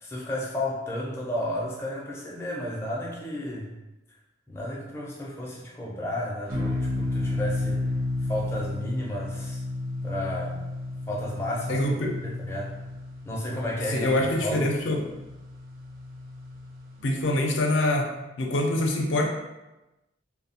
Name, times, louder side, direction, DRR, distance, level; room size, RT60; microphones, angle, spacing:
voice 1, 0.0-3.7 4.5-7.9 8.2-9.6 10.0-10.6 11.1-11.8 12.2-12.7 13.2-14.7, left 1 dB, 15° left, -4 dB, 0.4 m, -32 dB
sound 1, 6.5-17.0, left 2 dB, 45° right, 0.5 m, -32 dB
voice 2, 11.7-12.2 13.9-15.1 17.0-19.3, left 1 dB, 70° left, 1 dB, 0.5 m, -25 dB
2.7 x 2.0 x 2.8 m, 1.0 s
head